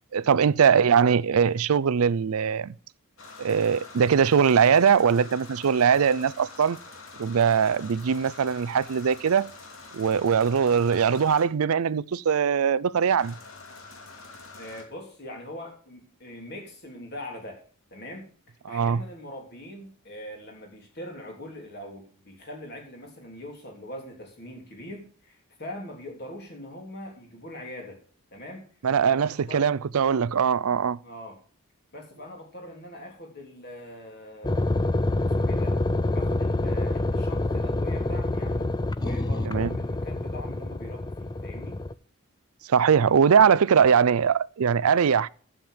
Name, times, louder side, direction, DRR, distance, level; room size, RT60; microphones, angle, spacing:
voice 1, 0.1-2.7 3.4-6.8 7.2-9.5 9.9-13.3 18.7-19.0 28.8-31.0 39.5-39.7 42.7-45.3, right 7 dB, 80° right, 0.4 m, -21 dB
sound 1, 3.2-11.4 13.2-14.8, left 3 dB, 65° left, 2.7 m, -46 dB
voice 2, 14.6-17.6 17.9-18.3 18.7-28.0 28.3-28.7 29.0-29.7 31.0-31.4 31.9-34.7 35.2-35.8 36.1-38.7 39.0-41.8, left 1 dB, 45° left, 3.6 m, -42 dB
sound 2, 34.4-41.9, left 2 dB, 20° left, 0.4 m, -27 dB
12.0 x 7.3 x 5.0 m
head